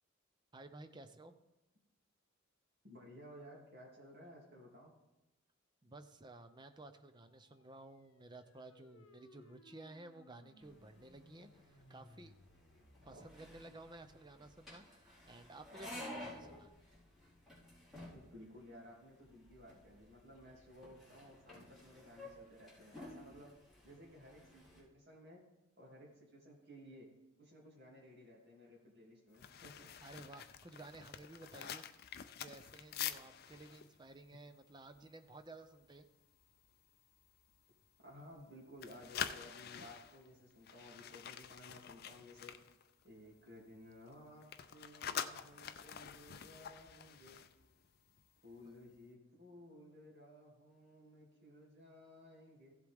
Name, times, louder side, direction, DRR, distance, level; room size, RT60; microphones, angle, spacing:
voice 1, 0.5-1.3 5.8-12.3 13.0-16.7 30.0-31.8 32.3-36.1 48.6-48.7, right 2 dB, 20° right, 8 dB, 0.6 m, -55 dB
voice 2, 2.8-4.9 13.1-13.2 18.0-23.5 23.8-25.4 25.8-27.1 27.4-29.9 38.0-42.5 43.0-47.4 48.4-52.7, left 1 dB, 50° right, -3 dB, 2.7 m, -57 dB
sound 1, 7.2-14.1, left 1 dB, 75° left, 0.9 m, -64 dB
sound 2, 10.6-24.8, left 1 dB, ahead, 4.5 m, -54 dB
sound 3, 29.3-35.5 35.8-36.0 36.4-36.7 37.2-38.5 38.7-43.5 43.7-48.3 48.5-48.8, left 9 dB, 50° left, 0.4 m, -47 dB
15.5 x 7.9 x 3.6 m, 0.98 s
head